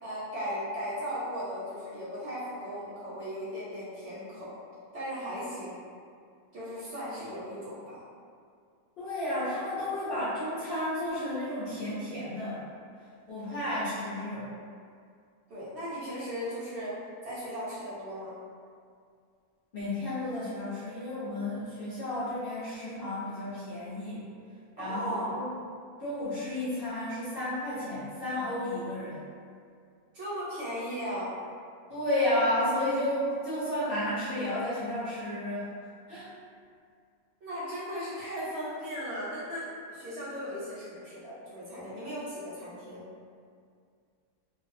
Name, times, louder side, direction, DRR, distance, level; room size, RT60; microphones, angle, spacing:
voice 1, 0.0-4.5 4.9-5.8 6.5-8.0 15.5-17.0 17.2-18.4 24.8-25.4 30.1-31.3 37.4-43.1, equal, 60° right, -9 dB, 0.8 m, -37 dB
voice 2, 9.0-12.7 13.3-14.6 19.7-24.2 24.8-25.5 26.0-29.2 31.9-35.7 36.1-36.3, left 1 dB, 55° left, -12 dB, 0.7 m, -32 dB
2.5 x 2.0 x 2.5 m, 2.2 s
omnidirectional pair, 1.5 m